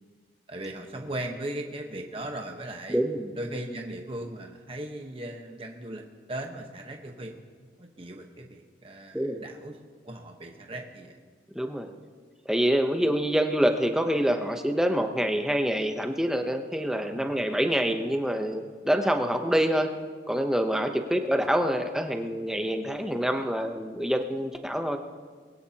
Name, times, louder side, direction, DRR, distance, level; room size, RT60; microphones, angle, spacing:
voice 1, 0.5-3.0 3.3-6.0 6.3-7.4 7.8-9.8 10.0-11.1 17.1-17.3, right 1 dB, 30° right, 2 dB, 1.2 m, -38 dB
voice 2, 2.9-3.3 9.1-9.4 11.5-11.9 12.5-19.9 20.3-25.0, equal, 5° right, 5 dB, 0.8 m, -26 dB
21.5 x 17.5 x 2.9 m, 1.5 s
head